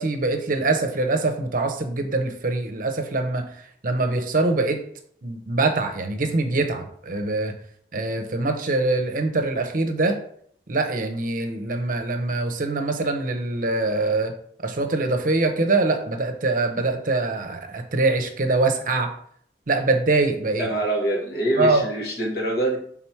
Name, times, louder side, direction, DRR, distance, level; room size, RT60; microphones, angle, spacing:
voice 1, 0.0-3.5 3.8-4.8 5.2-7.5 7.9-10.2 10.7-14.3 14.6-19.1 19.7-20.7 21.6-21.8, right 2 dB, 50° right, 5 dB, 0.8 m, -23 dB
voice 2, 20.6-22.8, right 1 dB, 60° left, 0 dB, 1.6 m, -24 dB
6.0 x 3.8 x 4.5 m, 0.63 s
head